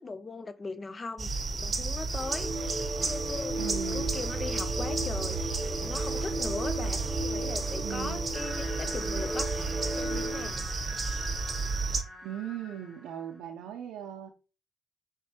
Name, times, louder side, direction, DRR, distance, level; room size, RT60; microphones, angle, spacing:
voice 1, 0.0-2.8 3.0-9.5 9.9-10.6, left 3 dB, 30° left, 0.6 m, -39 dB
sound 1, 1.2-12.0, right 4 dB, 35° right, 0.8 m, -32 dB
sound 2, 2.2-10.6, right 1 dB, 20° right, 0.4 m, -36 dB
voice 2, 3.6-4.2 7.8-8.2 12.2-14.3, right 10 dB, 80° right, 0.5 m, -39 dB
sound 3, 8.3-13.4, left 1 dB, 5° right, 1.4 m, -45 dB
5.7 x 3.2 x 2.9 m
supercardioid pair, 65°, 0 cm